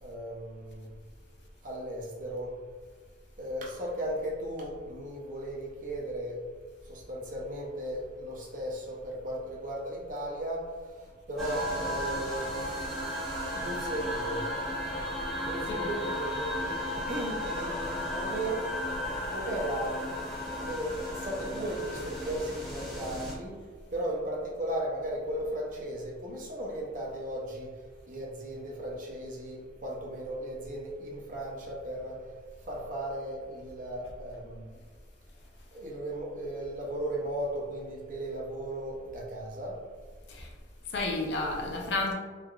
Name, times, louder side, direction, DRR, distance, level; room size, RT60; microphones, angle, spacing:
voice 1, 0.0-0.9 1.6-2.5 3.4-6.4 6.9-10.7 11.3-12.7 13.5-14.4 15.4-18.6 19.3-23.5 23.9-27.7 28.1-32.2 32.7-34.6 35.7-39.8, right 1 dB, 45° right, -3 dB, 0.6 m, -36 dB
sound 1, 11.4-23.3, left 1 dB, ahead, 0.7 m, -34 dB
voice 2, 40.9-42.1, left 2 dB, 65° left, 1 dB, 0.5 m, -31 dB
3.2 x 2.4 x 2.2 m, 1.5 s
head